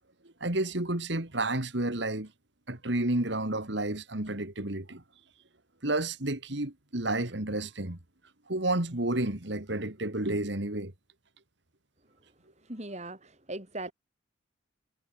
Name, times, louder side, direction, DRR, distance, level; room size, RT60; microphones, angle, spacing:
voice 1, 0.4-2.3 2.7-5.0 5.8-8.0 8.5-10.9, right 2 dB, 65° right, 2.5 m, -31 dB
voice 2, 12.7-13.9, right 2 dB, 35° right, 5.6 m, -39 dB
head